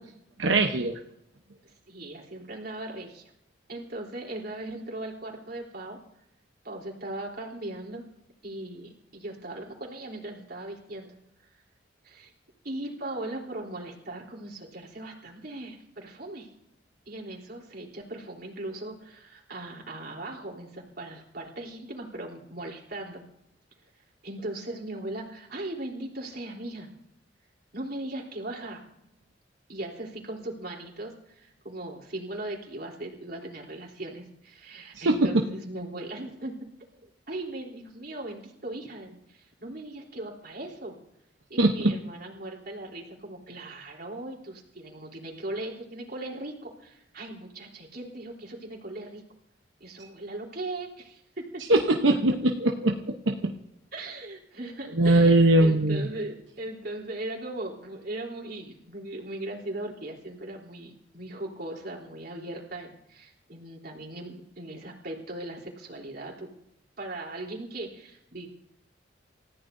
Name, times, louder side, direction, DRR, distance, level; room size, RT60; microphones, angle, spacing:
voice 1, 0.4-0.9 35.0-35.3 41.6-41.9 51.7-53.0 53.3-53.4 55.0-56.1, right 2 dB, 90° right, 2 dB, 1.0 m, -21 dB
voice 2, 1.6-3.3 3.7-6.0 6.6-8.1 8.4-11.1 12.0-12.3 12.6-16.5 17.1-23.2 24.2-26.9 27.7-28.8 29.7-36.6 37.0-41.0 41.5-49.2 49.8-51.6 53.9-66.5 67.0-68.5, right 1 dB, 55° right, -1 dB, 3.6 m, -38 dB
29.0 x 14.5 x 2.7 m, 0.78 s
head